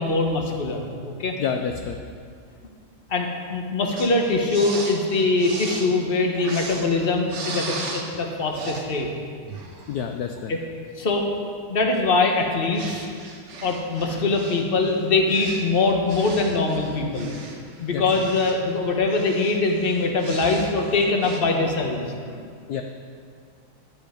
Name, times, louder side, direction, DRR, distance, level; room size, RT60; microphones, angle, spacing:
voice 1, 0.0-1.3 3.1-9.1 10.5-10.6 11.0-11.2 11.7-13.0 13.6-17.3 17.8-22.4, left 3 dB, 35° left, 2 dB, 1.1 m, -23 dB
voice 2, 1.4-2.0 9.9-10.5 17.9-18.3 22.7-22.8, left 7 dB, 70° left, 5 dB, 0.9 m, -28 dB
sound 1, 4.0-8.2 8.5-8.9 9.4-10.3 12.1-12.2 12.7-18.8 19.1-21.4, right 3 dB, 60° right, 1.8 m, -37 dB
11.0 x 10.5 x 5.1 m, 2.2 s
omnidirectional pair, 2.2 m